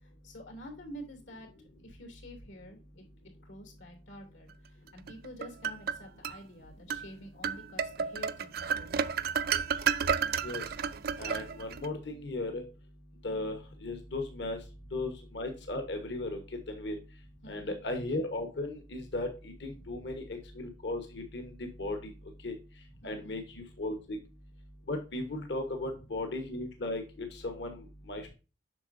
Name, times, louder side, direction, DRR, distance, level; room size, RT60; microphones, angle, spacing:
voice 1, 0.0-1.5 1.8-9.1 17.4-17.8 19.7-20.0 23.0-23.4 28.3-28.4, equal, 85° left, 3 dB, 2.9 m, -49 dB
sound 1, 5.1-6.4 6.9-7.1 7.4-11.9, right 6 dB, 50° right, 0.4 m, -31 dB
voice 2, 11.2-12.6 13.2-14.6 14.9-16.4 16.7-17.0 17.5-21.5 21.8-22.1 22.4-22.5 23.0-24.2 24.9-28.3, left 2 dB, 65° left, 4 dB, 1.3 m, -36 dB
8.2 x 6.0 x 2.6 m, 0.31 s
head